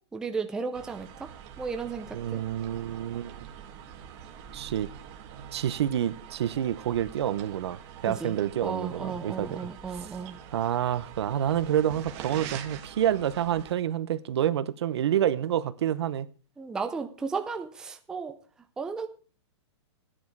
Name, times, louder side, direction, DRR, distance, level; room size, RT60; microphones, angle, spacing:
voice 1, 0.1-1.3 1.6-2.4 8.1-8.4 8.6-10.4 16.6-18.4 18.8-19.1, right 5 dB, 5° right, 0.5 m, -34 dB
sound 1, 0.7-13.7, right 8 dB, 30° right, 1.4 m, -45 dB
voice 2, 2.1-3.5 4.5-4.9 5.5-9.6 10.0-10.1 10.5-16.3, right 10 dB, 65° right, 0.9 m, -28 dB
13.0 x 10.0 x 4.6 m
hypercardioid pair, 165°, 15 cm